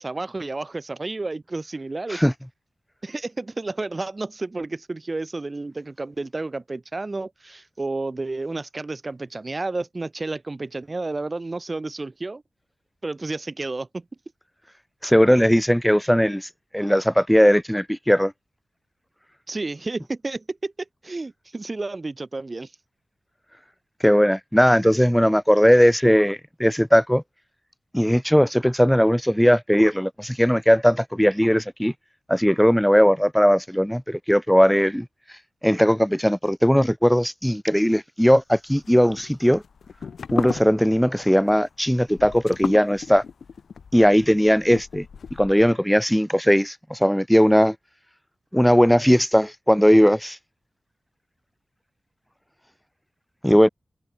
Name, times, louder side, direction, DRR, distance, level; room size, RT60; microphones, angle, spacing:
voice 1, 0.0-2.2 3.0-12.4 13.0-14.0 19.5-20.7 21.0-22.7, right 3 dB, 30° right, 6.8 m, -31 dB
voice 2, 15.0-16.5 16.7-18.3 24.0-27.2 27.9-31.9 32.3-35.1 35.6-39.6 40.3-43.2 43.9-45.1 45.4-47.8 48.5-50.4 53.4-53.7, equal, ahead, 0.4 m, -18 dB
sound 1, 38.7-45.8, left 6 dB, 75° left, 2.2 m, -35 dB
wide cardioid pair, 125°, 0 cm